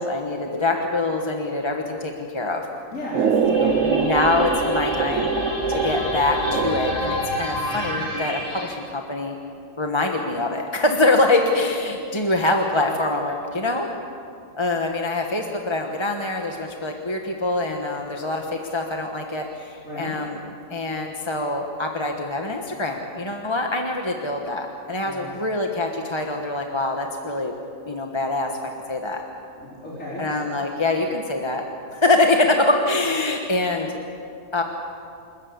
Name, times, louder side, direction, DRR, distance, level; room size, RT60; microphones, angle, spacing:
voice 1, 0.0-2.7 3.5-5.3 5.7-9.4 9.8-13.9 14.6-20.4 20.7-27.5 27.9-28.5 28.9-29.2 30.2-31.6 31.9-34.0 34.5-34.6, left 2 dB, 20° left, 2 dB, 1.3 m, -24 dB
voice 2, 2.9-3.8 19.8-20.2 25.0-25.3 29.7-30.2, equal, 75° left, -8 dB, 4.7 m, -34 dB
Strings Rumble, 3.1-7.2, right 6 dB, 70° right, 1.2 m, -24 dB
sound 1, 3.2-8.8, equal, 45° left, 3.0 m, -28 dB
27.5 x 14.0 x 8.3 m, 2.6 s
omnidirectional pair, 1.4 m